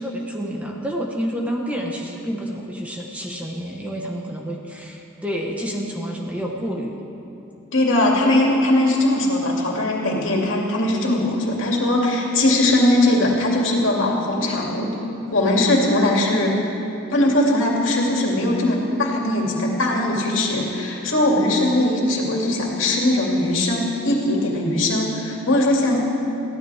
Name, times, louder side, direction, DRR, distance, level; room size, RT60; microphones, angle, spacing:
voice 1, 0.0-7.0, equal, 5° right, -1 dB, 1.2 m, -29 dB
voice 2, 7.7-14.9 15.3-16.5 17.1-26.0, left 1 dB, 70° left, -2 dB, 2.6 m, -20 dB
22.5 x 15.0 x 3.5 m, 2.9 s
head